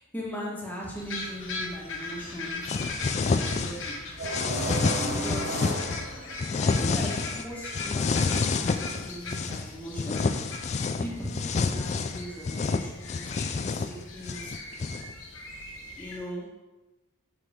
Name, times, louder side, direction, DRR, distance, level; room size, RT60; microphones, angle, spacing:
voice 1, 0.0-2.8 3.3-4.2 5.1-5.8 6.6-10.3 11.0-14.5 16.0-16.5, equal, 10° left, -4 dB, 1.6 m, -39 dB
sound 1, 1.0-16.2, left 3 dB, 60° left, 1.1 m, -40 dB
sound 2, 2.7-3.9 4.2-6.0 6.4-7.5 7.7-9.6 10.0-15.1, left 4 dB, 30° left, 0.3 m, -28 dB
sound 3, 4.2-6.8, right 2 dB, 50° right, 0.9 m, -33 dB
7.8 x 6.3 x 3.6 m, 1.1 s
head